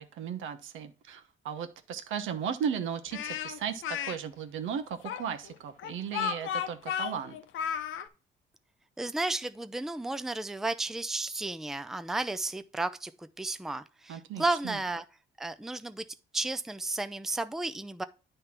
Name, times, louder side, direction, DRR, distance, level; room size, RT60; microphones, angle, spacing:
voice 1, 0.0-7.4 14.1-14.8, right 7 dB, 80° right, 1.0 m, -36 dB
Speech, 3.1-4.2 5.0-8.1, left 8 dB, 75° left, 0.7 m, -33 dB
voice 2, 9.0-15.0 15.4-16.0 16.3-18.0, right 2 dB, ahead, 0.5 m, -33 dB
9.4 x 3.4 x 5.8 m
cardioid pair, 90°, 20 cm